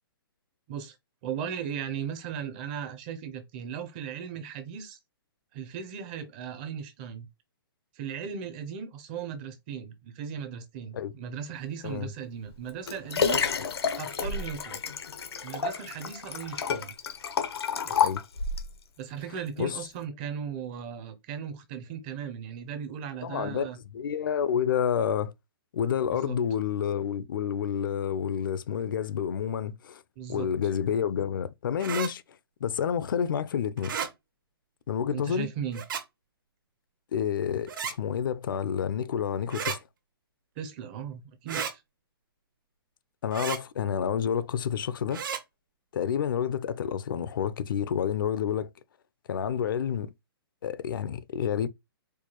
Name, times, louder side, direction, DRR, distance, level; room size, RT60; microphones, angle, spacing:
voice 1, 1.2-5.0 5.5-7.3 7.9-13.4 14.0-14.8 15.4-16.9 17.8-18.1 19.0-23.8 26.1-26.4 30.2-30.5 35.1-35.8 40.6-41.8, right 7 dB, 25° right, 0.5 m, -37 dB
Liquid, 12.5-18.7 19.4-19.5, left 6 dB, 90° left, 0.8 m, -30 dB
voice 2, 23.2-23.7 23.9-25.3 25.7-30.0 30.3-32.2 32.6-34.0 34.9-35.5 37.1-39.8 43.2-45.2 45.9-48.7 49.3-50.1 50.6-51.7, left 8 dB, 60° left, 0.5 m, -29 dB
sound 1, 31.8-32.1 33.8-34.1 35.7-36.0 37.7-37.9 39.5-39.8 41.5-41.7 43.3-43.6 45.1-45.4, right 7 dB, 55° right, 0.8 m, -33 dB
4.5 x 2.2 x 2.9 m
hypercardioid pair, 160°, 13 cm